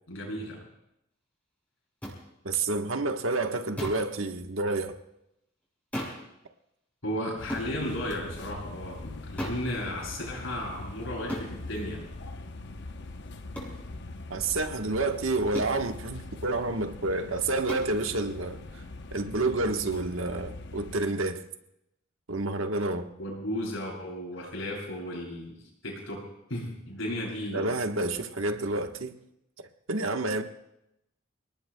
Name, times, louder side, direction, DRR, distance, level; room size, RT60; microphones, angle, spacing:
voice 1, 0.1-0.6 7.0-12.0 23.2-25.6 25.8-26.2 26.5-27.7, left 1 dB, 90° left, 7.5 m, -34 dB
sound 1, 2.0-2.2 3.8-4.1 5.9-6.3 7.5-7.7 9.4-9.7 11.3-11.5 13.5-13.8 15.5-15.8 17.7-17.9, equal, 5° left, 6.7 m, -35 dB
voice 2, 2.4-5.0 14.3-18.8 19.1-21.4 22.3-23.1 27.5-29.1 29.6-30.4, right 2 dB, 85° right, 1.3 m, -29 dB
sound 2, 7.4-21.0, left 2 dB, 60° left, 0.8 m, -42 dB
29.5 x 19.0 x 2.3 m
head